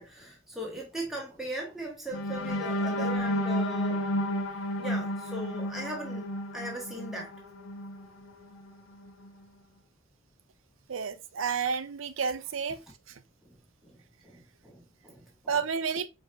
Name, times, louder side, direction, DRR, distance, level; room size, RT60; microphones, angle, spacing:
voice 1, 0.0-4.0 4.8-6.2 6.5-7.3 13.4-13.6 13.8-14.0 14.2-15.6, right 1 dB, ahead, 1.2 m, -39 dB
sound 1, 2.1-8.1 8.5-8.7 9.1-9.3, equal, 75° left, 1.0 m, -31 dB
voice 2, 10.9-12.8 15.5-16.1, right 6 dB, 75° right, 0.6 m, -30 dB
4.8 x 4.0 x 2.5 m
head